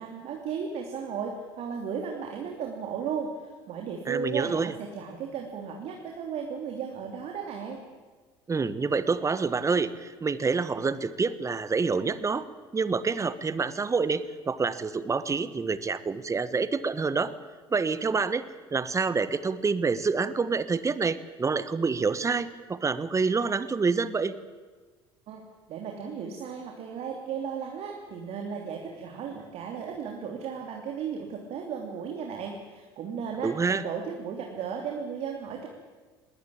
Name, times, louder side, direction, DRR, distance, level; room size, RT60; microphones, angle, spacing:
voice 1, 0.0-7.8 25.3-25.4 25.7-35.7, right 6 dB, 55° right, 1 dB, 3.1 m, -35 dB
voice 2, 4.1-4.7 8.5-12.5 12.7-17.3 17.7-18.4 18.7-24.3 33.4-33.8, right 4 dB, 25° right, 15 dB, 1.4 m, -27 dB
20.5 x 18.5 x 8.7 m, 1.4 s
hypercardioid pair, 65°, 13 cm